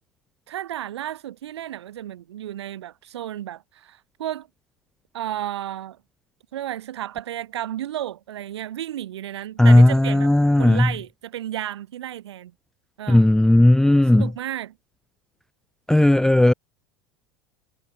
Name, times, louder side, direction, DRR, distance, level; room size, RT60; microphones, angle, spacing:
voice 1, 0.5-4.5 5.1-6.0 6.5-10.3 10.6-12.5 13.0-13.2 14.1-14.7, right 12 dB, 70° right, 2.7 m, -32 dB
voice 2, 9.6-10.9 13.1-14.3 15.9-16.5, left 1 dB, 5° left, 0.5 m, -15 dB
figure-of-eight pair, 80°, 15 cm